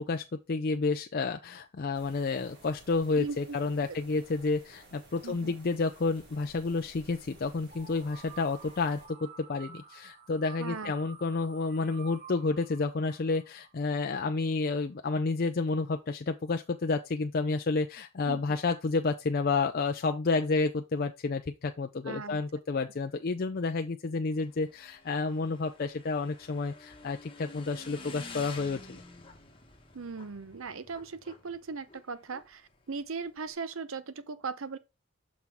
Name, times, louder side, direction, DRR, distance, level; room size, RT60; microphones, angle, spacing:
voice 1, 0.0-29.0, left 3 dB, 40° left, 0.4 m, -30 dB
sound 1, 1.9-9.1, right 2 dB, 50° right, 3.2 m, -55 dB
voice 2, 3.1-3.6 5.2-5.5 10.6-10.9 18.2-18.4 22.1-22.4 29.9-34.8, right 4 dB, 65° right, 0.7 m, -38 dB
sound 2, 7.7-14.5, right 6 dB, 30° right, 1.4 m, -51 dB
Motorcycle / Engine, 24.3-33.5, left 3 dB, 25° left, 1.0 m, -50 dB
6.0 x 5.8 x 3.5 m
head